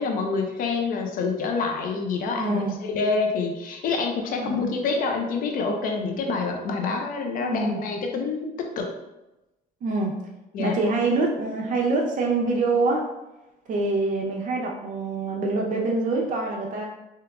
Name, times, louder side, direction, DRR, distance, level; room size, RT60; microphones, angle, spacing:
voice 1, 0.0-8.9 10.5-10.8, left 4 dB, 55° left, 2 dB, 0.5 m, -27 dB
voice 2, 2.3-2.7 4.4-4.7 7.4-7.8 9.8-10.1 10.6-13.0 13.7-16.8, right 3 dB, 50° right, -1 dB, 0.5 m, -25 dB
3.6 x 2.9 x 2.3 m, 0.99 s
cardioid pair, 110°, 17 cm